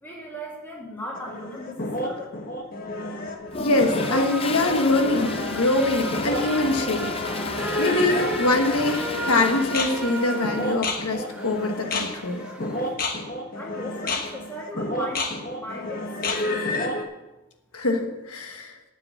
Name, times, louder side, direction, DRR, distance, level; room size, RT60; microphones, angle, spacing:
voice 1, 0.0-2.4 13.5-15.3 15.6-17.0, equal, 10° left, -3 dB, 2.5 m, -37 dB
sound 1, 1.1-17.0, left 2 dB, 40° left, 1.2 m, -30 dB
Toilet flush, 3.5-10.7, left 4 dB, 25° left, 0.6 m, -34 dB
voice 2, 3.6-7.1 7.8-12.4 17.7-18.8, left 2 dB, 85° left, 4 dB, 1.3 m, -24 dB
sound 2, 3.8-12.9, right 1 dB, 5° right, 1.4 m, -34 dB
9.3 x 7.0 x 8.3 m, 1.0 s
head